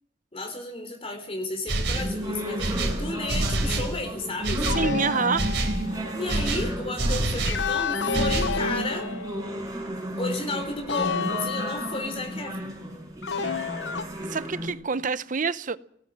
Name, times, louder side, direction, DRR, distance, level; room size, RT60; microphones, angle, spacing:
voice 1, 0.3-4.7 6.1-9.1 10.2-12.7, left 2 dB, 35° left, 3.6 m, -33 dB
sound 1, 1.7-2.2 2.6-4.0 4.4-4.9 5.4-5.8 6.3-7.7 8.1-8.6, right 2 dB, 75° right, 3.6 m, -27 dB
sound 2, 1.9-14.7, equal, 20° right, 5.0 m, -33 dB
sound 3, 4.6-6.1 7.4-9.8 10.9-12.3 13.2-14.0, left 5 dB, 75° left, 1.0 m, -30 dB
voice 2, 4.7-5.5 14.3-15.8, right 5 dB, 45° right, 0.8 m, -27 dB
19.0 x 19.0 x 7.5 m
head